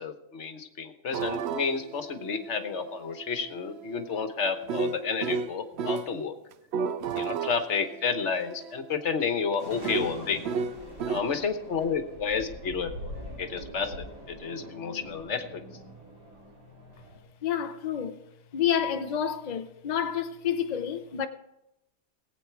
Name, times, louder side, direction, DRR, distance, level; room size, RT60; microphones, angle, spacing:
voice 1, 0.0-6.4 7.1-10.4 11.1-13.1 13.4-15.6, left 5 dB, 50° left, 1.3 m, -31 dB
sound 1, 1.1-6.1 6.5-11.2, right 5 dB, 70° right, 0.6 m, -34 dB
sound 2, 9.6-17.2, equal, 85° right, 5.0 m, -43 dB
voice 2, 17.4-18.2 18.5-21.3, left 9 dB, 75° left, 0.4 m, -29 dB
19.0 x 8.4 x 4.6 m
omnidirectional pair, 1.7 m